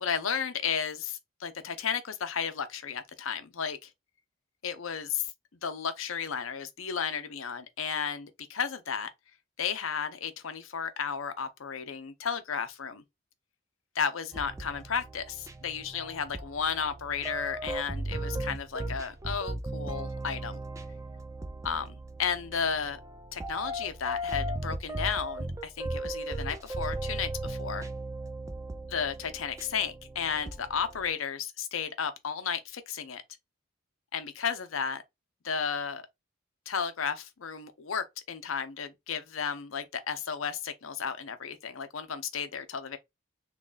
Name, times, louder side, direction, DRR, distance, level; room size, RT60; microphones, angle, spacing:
voice 1, 0.0-3.9 4.6-5.3 5.6-9.1 9.6-13.0 13.9-20.6 21.6-23.0 23.3-27.9 28.9-33.2 34.1-35.0 35.4-36.1 36.7-43.0, left 6 dB, 85° left, 0.7 m, -33 dB
sound 1, 14.3-31.1, right 1 dB, 15° right, 0.3 m, -37 dB
3.2 x 2.3 x 3.9 m
head